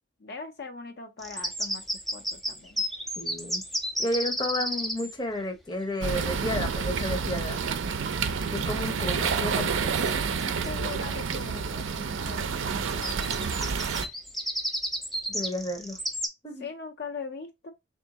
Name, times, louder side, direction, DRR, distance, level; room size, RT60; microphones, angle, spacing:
voice 1, 0.2-1.8 2.1-2.8 10.4-14.0 16.6-17.7, left 4 dB, 55° left, 0.6 m, -41 dB
sound 1, 1.2-5.2 8.6-8.7 9.3-9.7 10.0-10.1 10.4-11.5 12.8-16.3, equal, ahead, 0.4 m, -32 dB
voice 2, 3.2-3.6 4.0-7.6 8.5-9.9 15.3-16.0 16.4-16.7, left 1 dB, 20° left, 0.7 m, -32 dB
sound 2, 6.0-14.1, right 5 dB, 80° right, 0.5 m, -29 dB
3.5 x 2.4 x 3.9 m
head